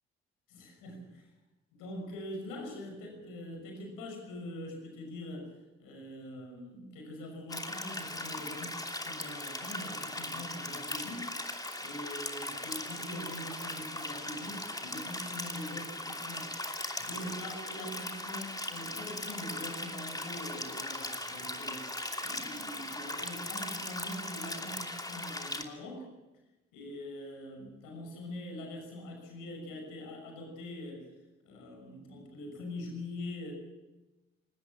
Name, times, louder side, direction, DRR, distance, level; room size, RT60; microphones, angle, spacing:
voice 1, 0.5-1.3 1.7-5.5 5.8-11.3 11.8-16.5 17.0-21.9 22.2-26.1 26.7-31.1 31.4-33.5, left 1 dB, 70° left, 3 dB, 6.0 m, -43 dB
sound 1, 7.5-25.6, left 1 dB, 10° left, 2.7 m, -39 dB
20.5 x 18.0 x 7.5 m, 1.1 s
figure-of-eight pair, 45°, 34 cm